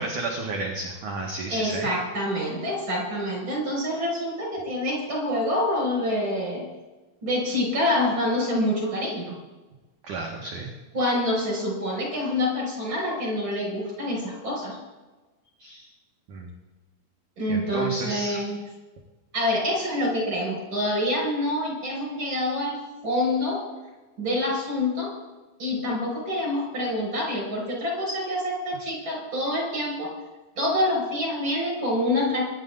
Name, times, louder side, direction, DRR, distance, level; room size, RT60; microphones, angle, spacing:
voice 1, 0.0-1.9 10.0-10.7 15.6-15.9 16.3-16.5 17.5-18.4, right 2 dB, 70° right, 0 dB, 1.9 m, -32 dB
voice 2, 1.5-6.7 7.2-9.3 10.9-14.8 17.4-18.6 19.3-22.8 23.0-23.6 24.2-25.1 25.6-30.1 30.6-32.4, left 1 dB, 25° right, -2 dB, 6.6 m, -26 dB
24.0 x 12.0 x 3.9 m, 1.2 s
omnidirectional pair, 5.8 m